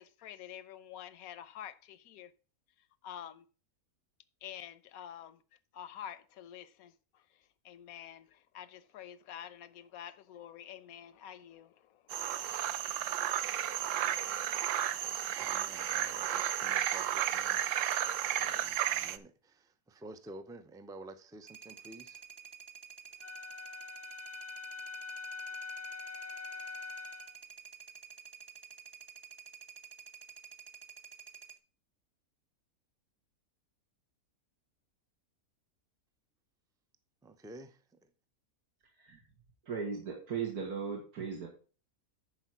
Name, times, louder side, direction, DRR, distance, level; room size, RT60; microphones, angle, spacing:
voice 1, 0.0-2.3 2.8-3.5 4.4-5.4 5.7-12.3, left 10 dB, 75° left, 1.1 m, -48 dB
sound 1, 12.1-19.2, right 11 dB, 65° right, 0.9 m, -33 dB
voice 2, 15.4-17.6 18.4-22.2 37.2-38.1, right 2 dB, 5° right, 0.3 m, -51 dB
sound 2, 21.5-31.6, right 7 dB, 20° right, 0.7 m, -51 dB
Wind instrument woodwind instrument, 23.2-27.4, left 4 dB, 50° left, 0.5 m, -44 dB
voice 3, 39.7-41.5, right 6 dB, 85° right, 2.3 m, -37 dB
11.0 x 4.7 x 5.9 m
omnidirectional pair, 1.6 m